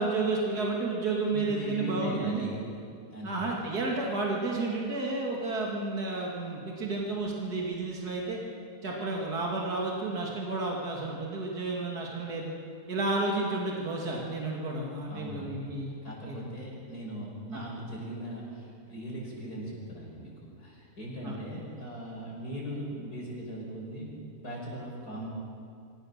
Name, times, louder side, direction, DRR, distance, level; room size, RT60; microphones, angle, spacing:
voice 1, 0.0-2.5 3.2-8.4 8.8-12.5 12.9-16.0 16.3-16.5 17.5-17.6 21.2-21.3, right 3 dB, 80° right, -2 dB, 2.8 m, -31 dB
voice 2, 1.3-2.6 3.1-3.4 15.1-15.7 16.0-20.3 20.6-25.3, right 1 dB, 75° left, -3 dB, 6.2 m, -39 dB
24.5 x 17.0 x 6.6 m, 2.4 s
omnidirectional pair, 1.6 m